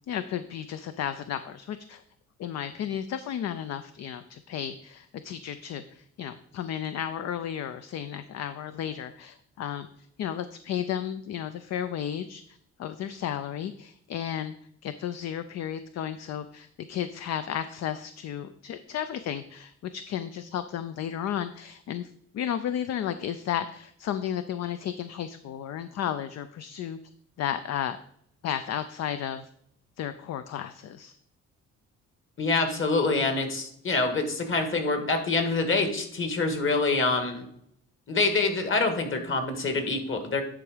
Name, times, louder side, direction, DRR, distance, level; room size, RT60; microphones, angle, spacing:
voice 1, 0.1-2.0 2.4-14.5 14.8-27.0 27.4-28.0 28.4-29.5 30.0-31.2, left 9 dB, 60° left, 11 dB, 0.5 m, -33 dB
voice 2, 32.4-37.5 38.1-40.4, left 3 dB, 40° left, 6 dB, 1.7 m, -26 dB
10.0 x 3.6 x 4.9 m, 0.68 s
cardioid pair, 90°, 30 cm